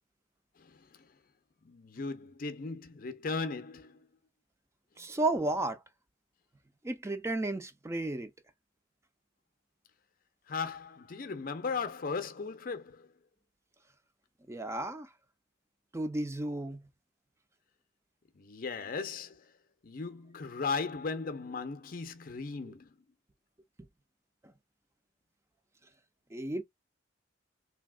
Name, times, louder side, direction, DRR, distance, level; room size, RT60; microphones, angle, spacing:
voice 1, 1.7-4.0 10.5-13.1 18.4-19.5 19.8-22.9, left 4 dB, 45° left, 0.5 m, -37 dB
voice 2, 5.0-5.8 6.8-8.3 14.5-15.1 15.9-16.8 26.3-26.6, right 2 dB, 15° right, 0.4 m, -33 dB
3.3 x 2.8 x 2.2 m
head